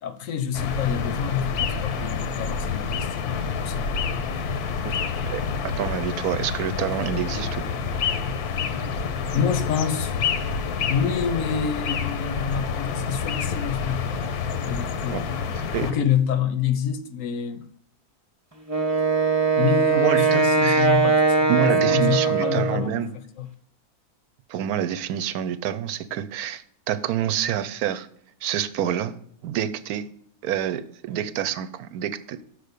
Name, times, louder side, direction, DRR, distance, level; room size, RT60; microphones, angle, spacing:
voice 1, 0.0-4.1 9.3-10.1 10.9-14.2 14.6-15.3 15.8-17.6 19.6-22.9 23.4-23.5, left 7 dB, 70° left, 1.0 m, -27 dB
sound 1, 0.5-15.9, left 6 dB, 85° left, 1.4 m, -28 dB
voice 2, 5.8-7.6 15.1-15.2 15.6-15.9 20.0-20.9 21.5-23.1 24.5-28.1 28.4-29.2 29.4-30.1 30.4-32.4, right 10 dB, 80° right, 1.1 m, -27 dB
Wind instrument woodwind instrument, 18.7-22.9, right 4 dB, 10° right, 1.1 m, -20 dB
6.5 x 5.1 x 6.6 m
omnidirectional pair, 1.6 m